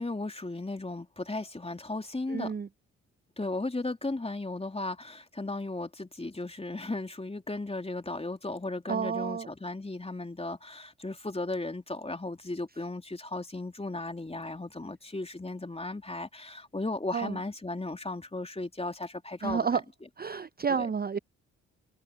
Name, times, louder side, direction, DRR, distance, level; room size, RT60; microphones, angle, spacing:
voice 1, 0.0-2.5 3.4-19.6 20.7-20.9, left 2 dB, 15° left, 3.3 m, -36 dB
voice 2, 2.3-2.7 8.9-9.5 17.1-17.4 19.4-19.8 20.2-21.2, right 6 dB, 25° right, 0.7 m, -30 dB
hypercardioid pair, 40°, 36 cm